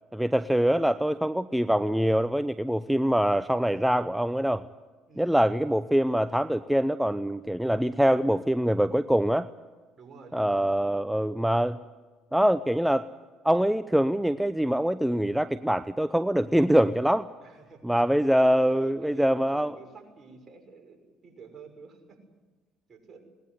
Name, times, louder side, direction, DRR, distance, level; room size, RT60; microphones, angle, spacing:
voice 1, 0.1-4.6 5.2-9.5 10.3-11.8 12.3-13.1 13.4-17.3 17.8-19.8, equal, 5° right, 13 dB, 0.7 m, -24 dB
voice 2, 5.1-5.4 10.0-10.9 17.4-17.8 18.3-22.2 22.9-23.2, right 4 dB, 40° right, 4 dB, 6.3 m, -50 dB
20.5 x 19.5 x 9.7 m, 1.3 s
hypercardioid pair, 60°, 0 cm